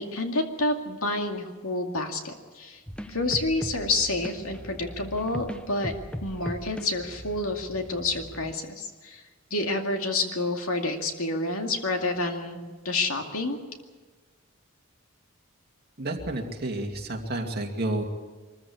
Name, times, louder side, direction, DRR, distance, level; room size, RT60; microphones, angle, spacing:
voice 1, 0.0-2.8 3.1-5.9 6.2-9.2 9.5-13.6, left 2 dB, 75° left, 4 dB, 2.3 m, -29 dB
sound 1, 2.9-8.5, equal, 5° left, 0.7 m, -39 dB
voice 2, 16.0-18.0, right 1 dB, 45° right, 2 dB, 2.4 m, -30 dB
23.5 x 14.5 x 8.5 m, 1.3 s
head